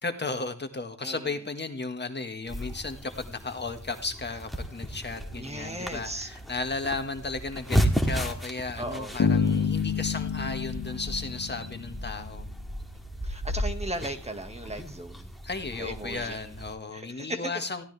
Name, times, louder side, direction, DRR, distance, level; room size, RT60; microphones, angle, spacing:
voice 1, 0.0-12.5 15.4-17.8, left 3 dB, 35° left, 6 dB, 1.8 m, -34 dB
voice 2, 1.0-1.4 5.4-6.3 8.8-9.2 13.2-15.3 15.8-16.4 16.9-17.5, right 1 dB, 20° right, 6 dB, 1.9 m, -37 dB
sound 1, 2.5-16.7, equal, ahead, 2.4 m, -34 dB
sound 2, 9.2-12.2, left 6 dB, 85° left, 1.7 m, -28 dB
22.0 x 16.0 x 3.4 m, 0.34 s
wide cardioid pair, 160°, 30 cm